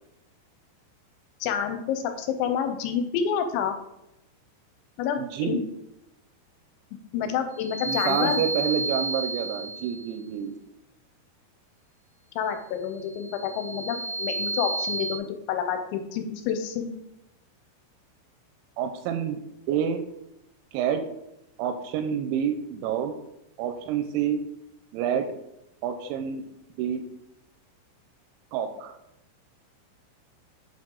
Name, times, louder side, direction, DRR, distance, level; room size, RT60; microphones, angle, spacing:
voice 1, 1.4-3.8 5.0-5.6 7.1-8.4 12.4-16.9, left 8 dB, 80° left, 7 dB, 2.8 m, -28 dB
voice 2, 5.2-5.6 7.9-10.6 18.8-19.4 19.7-20.0 20.7-21.0 21.6-23.1 23.6-24.4 24.9-25.4 25.8-26.4 26.8-27.0 28.5-29.0, right 8 dB, 85° right, 8 dB, 2.7 m, -28 dB
sound 1, 7.5-10.1 13.1-15.2, right 2 dB, 60° left, 2.7 m, -31 dB
7.3 x 5.8 x 3.7 m, 0.87 s
omnidirectional pair, 5.5 m